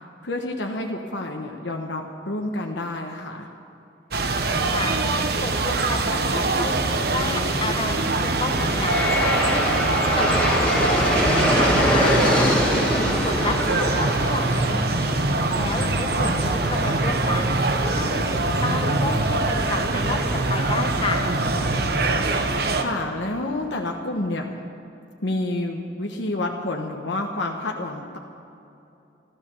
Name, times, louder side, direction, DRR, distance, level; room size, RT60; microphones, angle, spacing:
voice 1, 0.2-3.5 15.5-16.4 21.6-22.2 22.7-24.6 25.2-28.2, left 2 dB, 80° left, 1 dB, 1.1 m, -29 dB
sound 1, 4.1-22.8, right 2 dB, 55° right, 1.0 m, -23 dB
voice 2, 4.6-4.9 5.4-8.9 9.5-9.8 10.1-12.1 12.5-12.9 13.2-15.1 15.5-17.6 17.9-21.2, left 2 dB, 30° left, 4 dB, 1.4 m, -31 dB
Aircraft, 7.8-18.9, left 1 dB, 5° left, 1.9 m, -26 dB
14.0 x 13.0 x 6.9 m, 2.9 s
head